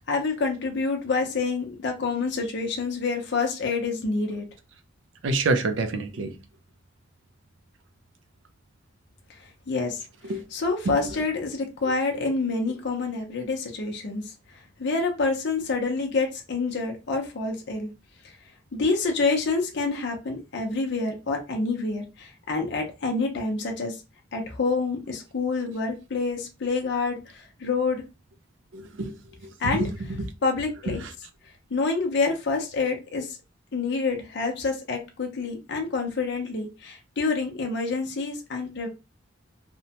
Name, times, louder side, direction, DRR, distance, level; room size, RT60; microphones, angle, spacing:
voice 1, 0.0-4.4 9.4-10.0 10.5-14.3 14.8-17.9 18.2-18.3 18.7-24.0 24.3-28.0 29.6-29.9 30.4-31.0 31.7-33.4 33.7-38.9, left 4 dB, 60° left, 0.6 m, -27 dB
voice 2, 5.2-6.3 10.3-10.4 10.9-11.0 28.7-29.1 29.7-29.9 31.0-31.1, right 3 dB, 70° right, 0.4 m, -26 dB
2.8 x 2.1 x 2.8 m
head